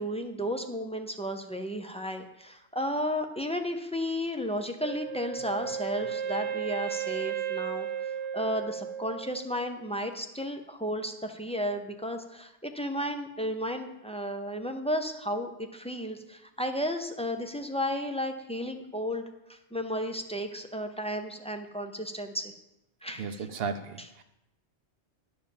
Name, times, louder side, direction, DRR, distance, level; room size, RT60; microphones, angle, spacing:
voice 1, 0.0-19.2 19.5-22.5 23.0-23.5 24.0-24.1, equal, 10° left, 5 dB, 0.5 m, -33 dB
Wind instrument woodwind instrument, 4.8-9.7, right 8 dB, 90° right, 1.0 m, -34 dB
voice 2, 23.2-24.2, right 5 dB, 65° right, 9 dB, 0.9 m, -35 dB
9.9 x 4.8 x 7.2 m, 0.89 s
omnidirectional pair, 1.1 m